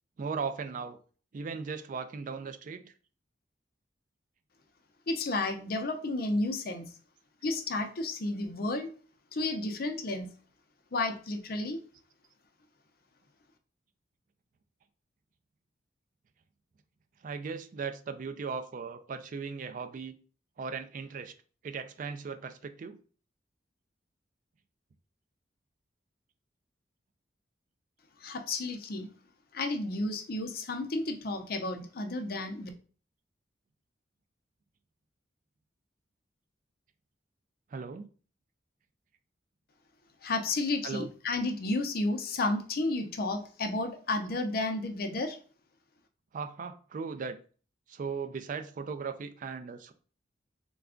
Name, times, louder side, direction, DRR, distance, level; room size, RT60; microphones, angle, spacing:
voice 1, 0.2-1.0 1.3-2.9 17.2-20.1 20.6-21.3 21.6-23.0 37.7-38.1 40.8-41.1 46.3-47.4 47.9-49.9, right 5 dB, 45° right, 0.3 m, -37 dB
voice 2, 5.1-6.9 7.4-8.9 9.3-10.3 10.9-11.8 28.2-29.1 29.5-32.7 40.2-45.4, left 2 dB, 55° left, 0.5 m, -32 dB
3.3 x 2.3 x 3.6 m
head